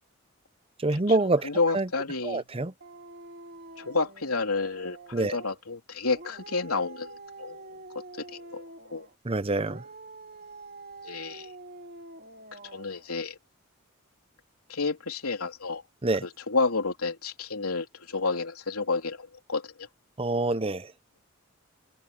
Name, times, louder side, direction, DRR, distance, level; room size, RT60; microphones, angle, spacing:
voice 1, 0.8-1.5 1.7-1.9 2.2-2.7 5.1-5.4 9.2-9.8 16.0-16.2 20.2-20.9, right 2 dB, 25° right, 0.7 m, -26 dB
voice 2, 1.4-2.4 3.8-7.8 8.2-8.6 8.9-9.1 11.0-11.5 12.5-13.4 14.7-15.8 16.2-19.9, left 3 dB, 80° left, 3.5 m, -30 dB
Dog, 2.8-5.6 6.1-9.2 9.6-13.1, right 2 dB, 45° right, 3.4 m, -46 dB
open air
head